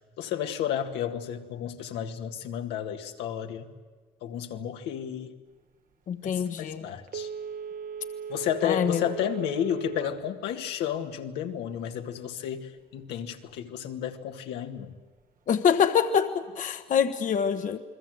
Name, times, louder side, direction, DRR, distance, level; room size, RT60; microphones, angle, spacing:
voice 1, 0.2-3.7 4.2-5.3 6.2-7.3 8.3-14.9, left 9 dB, 85° left, 4 dB, 2.0 m, -32 dB
voice 2, 6.1-6.9 8.6-9.0 15.5-17.8, left 7 dB, 50° left, 8 dB, 1.1 m, -25 dB
Telephone, 7.1-10.2 10.6-10.7, right 7 dB, 55° right, 1.2 m, -37 dB
29.0 x 21.0 x 7.9 m, 1.4 s
cardioid pair, 110°, 17 cm